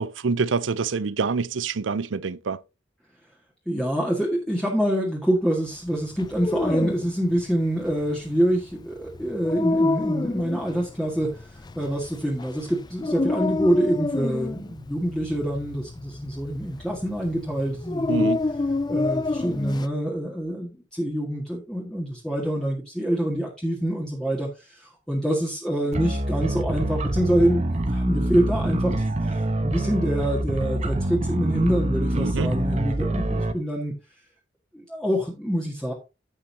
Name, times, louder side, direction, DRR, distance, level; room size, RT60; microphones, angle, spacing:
voice 1, 0.0-2.6 18.1-18.4 32.1-32.5, right 4 dB, 80° right, 0.6 m, -26 dB
voice 2, 3.6-18.3 18.9-33.9 34.7-35.9, right 1 dB, 5° left, 1.8 m, -26 dB
Dog, 6.1-19.9, left 2 dB, 20° left, 0.4 m, -28 dB
sound 1, 25.9-33.5, right 1 dB, 35° right, 1.0 m, -25 dB
15.0 x 5.6 x 2.8 m
head